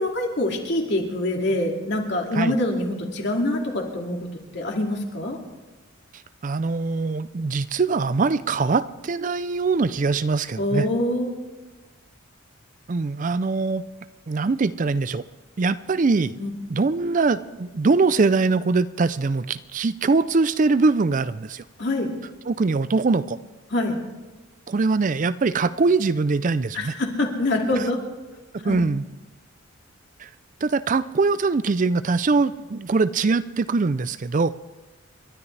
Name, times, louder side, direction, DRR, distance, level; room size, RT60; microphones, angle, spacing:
voice 1, 0.0-4.2 4.5-5.4 10.6-11.4 16.4-16.5 21.8-22.1 23.7-24.0 26.7-28.0 28.6-28.9, left 1 dB, 55° left, 1 dB, 2.4 m, -25 dB
voice 2, 6.4-10.9 12.9-13.8 14.3-15.2 15.6-16.3 16.7-21.6 22.5-23.4 24.7-26.9 27.8-27.9 28.5-29.1 30.2-30.3 30.6-34.5, right 4 dB, 40° right, 15 dB, 0.4 m, -22 dB
29.0 x 12.5 x 3.3 m, 1.2 s
head